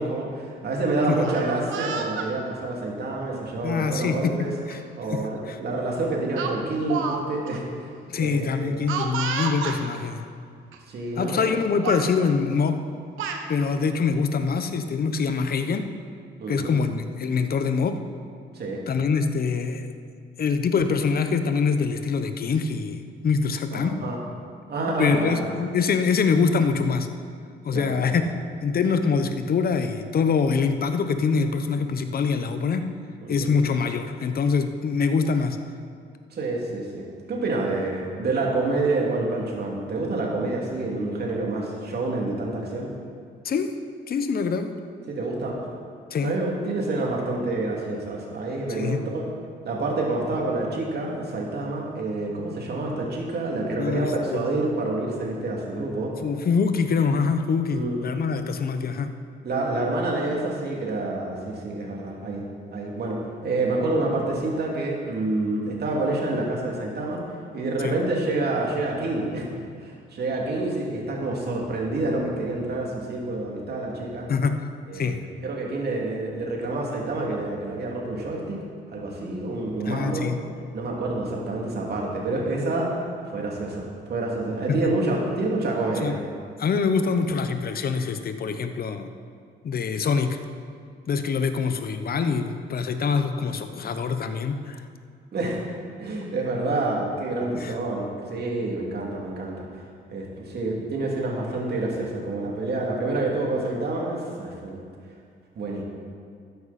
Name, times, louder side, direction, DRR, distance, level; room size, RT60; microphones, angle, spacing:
voice 1, 0.0-4.5 4.9-8.7 10.9-11.4 16.4-16.8 18.5-18.8 23.7-24.2 24.7-25.4 27.7-28.2 33.2-33.5 36.3-42.9 45.1-45.6 46.2-49.3 49.6-56.1 57.7-58.0 59.4-62.5 62.7-67.2 67.5-69.5 69.8-74.3 74.9-75.2 75.4-78.6 78.9-80.3 80.7-82.9 83.3-83.8 84.1-86.2 95.3-95.6 96.0-99.8 100.1-104.8 105.5-105.8, right 2 dB, 55° right, -2 dB, 2.6 m, -28 dB
Speech, 1.2-2.3 3.2-3.4 4.7-4.8 5.2-5.4 6.4-7.2 7.5-7.6 8.9-9.8 10.7-10.8 11.2-11.5 11.8-12.1 12.9-13.4, right 6 dB, 85° right, 1.1 m, -31 dB
voice 2, 3.6-4.3 4.7-4.8 5.1-5.2 5.5-5.6 8.1-10.2 11.2-12.8 13.5-15.9 16.5-18.0 18.9-19.9 20.4-24.0 25.0-27.1 27.6-28.3 28.6-32.8 33.3-35.6 43.4-43.7 44.1-44.7 46.1-46.3 48.7-49.0 53.8-54.5 56.2-59.1 67.8-67.9 74.3-74.6 74.9-75.2 79.9-80.4 84.7-84.8 86.0-86.2 86.6-89.1 89.6-90.4 91.1-94.8 97.6-97.7, left 5 dB, 50° left, 8 dB, 0.9 m, -24 dB
13.0 x 9.7 x 4.3 m, 2.2 s
cardioid pair, 90°, 20 cm